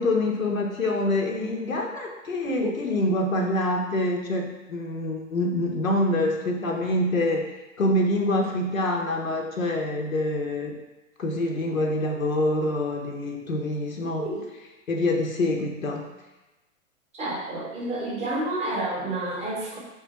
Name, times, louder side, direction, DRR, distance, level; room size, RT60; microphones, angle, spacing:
voice 1, 0.0-7.5 7.8-10.8 11.2-14.3 14.9-16.1, left 1 dB, 90° left, 1 dB, 0.7 m, -26 dB
voice 2, 2.4-2.8 14.2-14.4 17.1-19.8, right 2 dB, 15° right, -3 dB, 0.7 m, -29 dB
3.3 x 2.4 x 4.0 m, 1.1 s
figure-of-eight pair, 100°, 39 cm